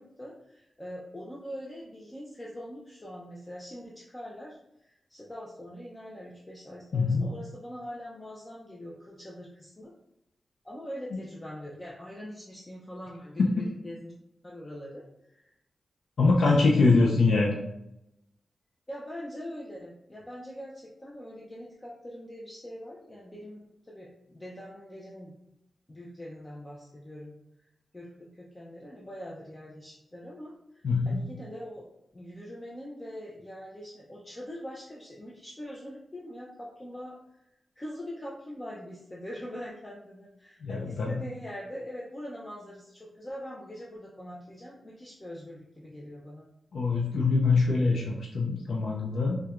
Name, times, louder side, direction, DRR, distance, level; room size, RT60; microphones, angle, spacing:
voice 1, 0.0-9.9 10.6-14.1 14.4-15.5 16.2-16.7 17.0-17.3 18.9-25.3 25.9-27.3 27.9-31.9 32.1-37.1 37.4-37.5 37.8-46.5, equal, 20° left, -4 dB, 0.5 m, -43 dB
voice 2, 6.9-7.3 13.4-13.5 16.2-17.6 30.8-31.2 40.6-41.2 46.7-49.4, left 3 dB, 85° left, -2 dB, 0.4 m, -24 dB
4.4 x 2.2 x 2.4 m, 0.84 s
wide cardioid pair, 90°, 0 cm